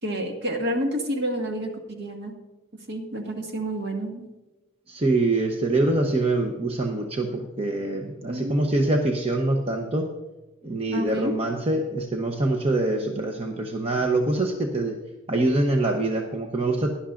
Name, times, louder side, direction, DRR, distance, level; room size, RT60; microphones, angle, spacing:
voice 1, 0.0-2.3 2.9-4.3 8.3-8.6 10.9-11.4, right 1 dB, 55° right, 2 dB, 1.8 m, -29 dB
voice 2, 4.9-10.1 10.6-15.0 15.3-16.9, right 2 dB, 30° right, 2 dB, 0.8 m, -24 dB
17.0 x 11.5 x 2.5 m, 1.1 s
head